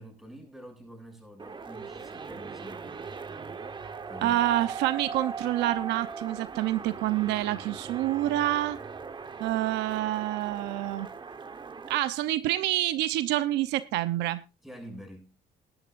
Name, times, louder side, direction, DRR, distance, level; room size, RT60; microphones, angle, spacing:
voice 1, 0.0-3.1 4.1-4.4 14.6-15.3, equal, ahead, 7.0 m, -46 dB
sound 1, 1.4-12.0, right 5 dB, 30° right, 1.2 m, -40 dB
voice 2, 4.2-8.8 9.4-11.1 11.9-14.4, right 14 dB, 90° right, 0.8 m, -27 dB
20.0 x 11.0 x 2.6 m
cardioid pair, 110°, 17 cm